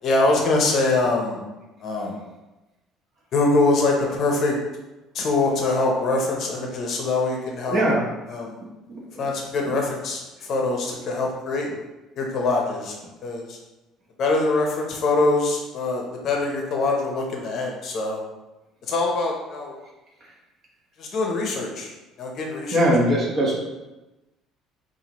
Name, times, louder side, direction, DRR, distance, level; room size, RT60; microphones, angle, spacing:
voice 1, 0.0-1.4 1.8-2.2 3.3-4.6 5.1-7.8 8.3-8.6 9.2-11.7 12.2-12.9 13.2-13.6 14.2-18.2 18.9-19.8 21.0-21.9 22.2-22.9, left 2 dB, 45° left, 0 dB, 0.7 m, -23 dB
voice 2, 7.7-8.0 9.7-9.8 22.7-23.6, equal, 35° right, -3 dB, 1.1 m, -20 dB
5.4 x 2.5 x 3.0 m, 1.0 s
cardioid pair, 150°, 0 cm